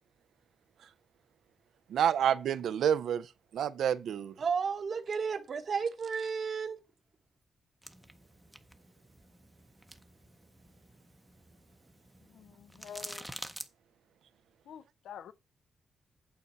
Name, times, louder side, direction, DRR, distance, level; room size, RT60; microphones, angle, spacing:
voice 1, 1.9-4.3, right 9 dB, 85° right, 0.5 m, -29 dB
voice 2, 4.4-6.8, right 5 dB, 45° right, 1.0 m, -32 dB
sound 1, 7.8-13.7, equal, ahead, 0.6 m, -49 dB
voice 3, 12.3-13.3 14.7-15.3, left 8 dB, 90° left, 0.5 m, -47 dB
8.7 x 4.0 x 5.6 m
wide cardioid pair, 150°, 0 cm